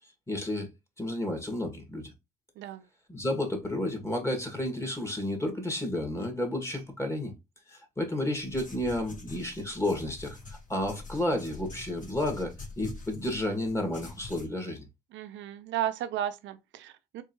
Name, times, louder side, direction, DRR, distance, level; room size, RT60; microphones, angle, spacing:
voice 1, 0.3-0.7 1.0-2.1 3.1-7.3 7.7-14.8, left 1 dB, 15° left, 2.0 m, -31 dB
sound 1, 8.4-14.5, left 3 dB, 45° left, 1.9 m, -45 dB
voice 2, 15.1-17.2, right 11 dB, 75° right, 0.7 m, -34 dB
4.6 x 3.4 x 3.0 m
supercardioid pair, 65°, 19 cm